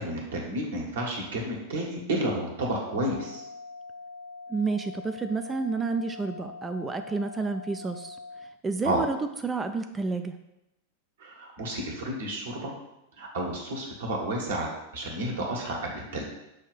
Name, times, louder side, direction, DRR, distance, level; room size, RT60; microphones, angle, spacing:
voice 1, 0.0-3.4 8.8-9.0 11.2-12.7 13.2-16.2, right 1 dB, 60° right, -1 dB, 1.5 m, -31 dB
sound 1, 2.7-8.4, left 3 dB, 30° right, 1.1 m, -43 dB
voice 2, 4.5-8.2 8.6-9.2 9.4-10.4, right 4 dB, 15° right, 8 dB, 0.3 m, -30 dB
6.3 x 2.7 x 5.5 m, 0.89 s
figure-of-eight pair, 90°, 0 cm